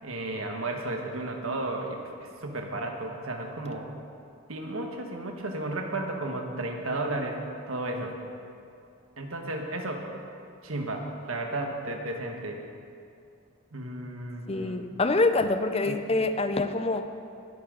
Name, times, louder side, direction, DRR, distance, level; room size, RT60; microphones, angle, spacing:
voice 1, 0.0-3.9 4.5-7.4 7.7-8.1 9.2-10.1 10.6-12.6 13.7-14.9 15.8-16.0, right 2 dB, 80° right, 2 dB, 1.4 m, -33 dB
voice 2, 14.5-17.0, left 2 dB, 30° left, 9 dB, 0.5 m, -25 dB
21.5 x 8.6 x 3.9 m, 2.5 s
head